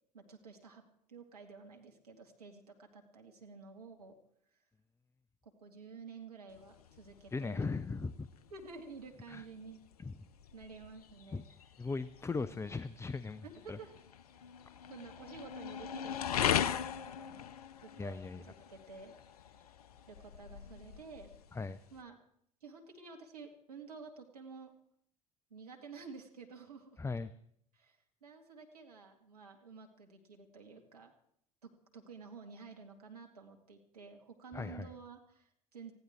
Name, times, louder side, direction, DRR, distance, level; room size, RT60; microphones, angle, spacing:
voice 1, 0.1-0.8 1.1-4.1 5.4-7.7 8.5-9.8 10.5-11.4 13.4-13.9 14.9-17.5 17.8-18.2 18.4-19.1 20.1-21.3 21.9-22.2 22.6-24.7 25.5-27.0 27.7-31.1 31.6-35.9, right 4 dB, 80° right, 2 dB, 2.2 m, -51 dB
sound 1, 6.5-22.0, left 9 dB, 75° left, 0.6 m, -40 dB
voice 2, 7.3-8.3 9.3-9.4 11.3-11.4 11.8-13.8 18.0-18.4 21.5-21.8 27.0-27.3 34.5-34.9, left 4 dB, 15° left, 15 dB, 0.6 m, -38 dB
19.5 x 15.0 x 4.5 m, 0.71 s
figure-of-eight pair, 65°, 19 cm